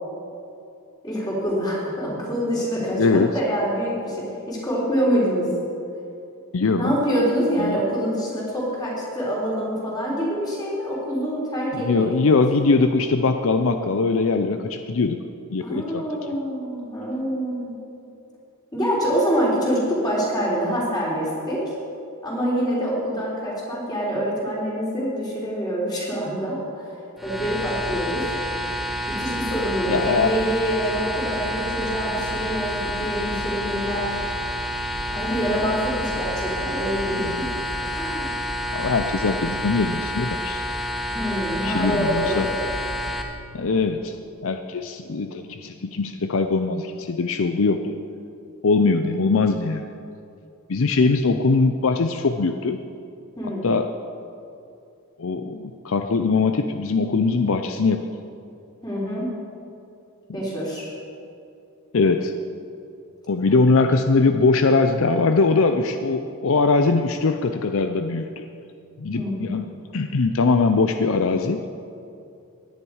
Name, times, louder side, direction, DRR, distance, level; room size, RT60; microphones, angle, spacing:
voice 1, 1.0-5.5 6.8-12.2 15.6-17.7 18.7-21.6 22.2-28.4 29.1-34.2 35.1-37.5 37.9-38.3 41.1-42.5 53.4-53.7 58.8-59.3 60.3-60.9 69.1-69.5, equal, 20° left, -5 dB, 3.9 m, -26 dB
voice 2, 3.0-3.3 6.5-6.9 7.6-7.8 11.8-15.2 15.5-16.0 29.9-30.3 38.7-40.6 41.6-42.5 43.5-44.2 44.4-47.9 48.6-49.8 50.7-52.8 53.6-53.9 55.2-58.1 61.9-62.3 63.3-68.5 69.0-71.7, left 3 dB, 65° left, 7 dB, 0.5 m, -21 dB
sound 1, 27.2-43.2, equal, ahead, 1.0 m, -29 dB
17.0 x 11.0 x 4.8 m, 2.6 s
head